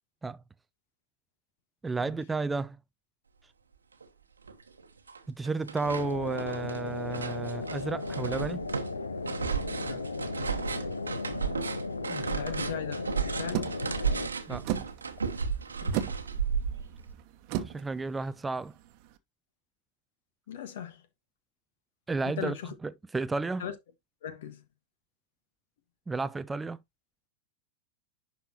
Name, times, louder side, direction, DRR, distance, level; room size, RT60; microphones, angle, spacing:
voice 1, 1.8-2.8 5.4-8.6 12.1-12.3 14.5-14.7 17.7-18.7 22.1-23.6 26.1-26.8, right 3 dB, 10° right, 0.3 m, -32 dB
sound 1, 4.0-4.1 4.5-5.2 5.4-17.1, right 6 dB, 75° right, 1.1 m, -34 dB
sound 2, 6.0-14.3, left 3 dB, 75° left, 0.8 m, -36 dB
voice 2, 12.3-13.7 15.8-16.1 20.5-21.0 22.2-22.8 23.6-23.8 24.2-24.6, left 9 dB, 55° left, 1.5 m, -38 dB
sound 3, 13.5-19.1, right 12 dB, 45° right, 1.0 m, -37 dB
11.0 x 4.1 x 2.8 m
figure-of-eight pair, 90°, 0 cm